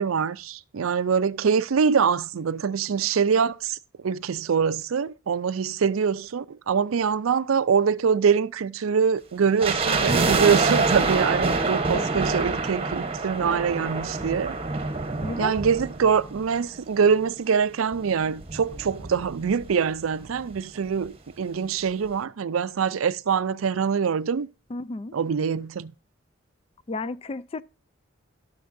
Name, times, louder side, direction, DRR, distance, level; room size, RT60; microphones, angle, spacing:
voice 1, 0.0-3.8 4.0-14.6 15.4-24.5 25.1-25.9, right 6 dB, 90° right, 0.5 m, -24 dB
sound 1, 9.6-16.9 17.1-17.2 17.9-19.7 20.0-20.1 20.3-20.6 21.1-21.2, right 3 dB, 30° right, 1.0 m, -26 dB
voice 2, 11.9-12.3 15.2-15.6 24.7-25.1 26.9-27.6, left 3 dB, 30° left, 0.4 m, -33 dB
14.0 x 6.7 x 2.6 m
head